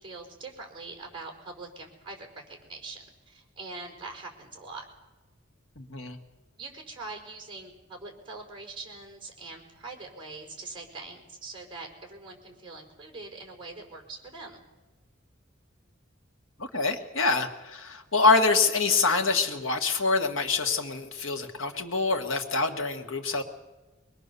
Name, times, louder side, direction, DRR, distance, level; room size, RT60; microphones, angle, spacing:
voice 1, 0.0-4.8 6.6-14.6, right 3 dB, 25° right, 2 dB, 4.8 m, -43 dB
voice 2, 5.8-6.2 16.6-23.4, left 3 dB, 90° left, 6 dB, 1.9 m, -25 dB
24.0 x 20.5 x 7.0 m, 1.2 s
head